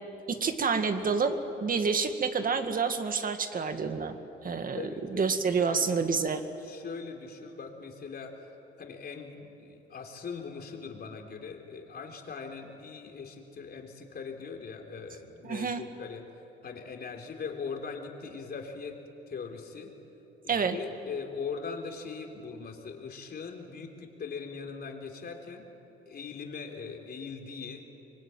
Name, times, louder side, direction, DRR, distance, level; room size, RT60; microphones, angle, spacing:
voice 1, 0.3-4.2 4.4-4.8 5.1-6.4 15.4-15.8 20.5-20.8, right 5 dB, 45° right, 7 dB, 2.0 m, -28 dB
voice 2, 4.7-6.0 6.2-8.5 8.8-16.3 16.6-19.0 19.3-19.9 20.4-25.7 26.1-27.8, left 5 dB, 50° left, 3 dB, 3.6 m, -41 dB
25.0 x 22.5 x 9.2 m, 3.0 s
cardioid pair, 90°, 20 cm